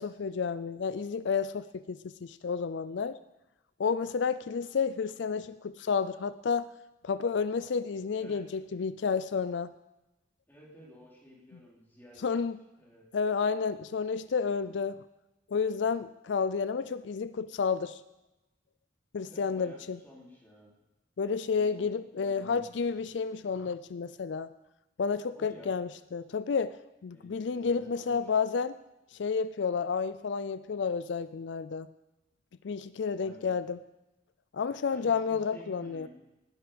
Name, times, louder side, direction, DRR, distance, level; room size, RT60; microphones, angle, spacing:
voice 1, 0.0-3.2 3.8-6.7 7.0-9.7 12.2-12.6 13.1-15.0 15.5-18.0 19.1-20.0 21.2-24.5 25.0-26.8 27.0-28.8 29.1-31.9 32.6-33.8 34.5-36.1, left 5 dB, 75° left, 14 dB, 0.4 m, -31 dB
voice 2, 10.5-12.2 12.8-13.0 14.4-14.7 19.3-20.7 21.6-22.8 25.4-25.7 27.1-28.3 33.1-33.6 34.9-36.1, equal, 10° left, -4 dB, 3.9 m, -52 dB
19.0 x 10.5 x 5.2 m, 1.0 s
head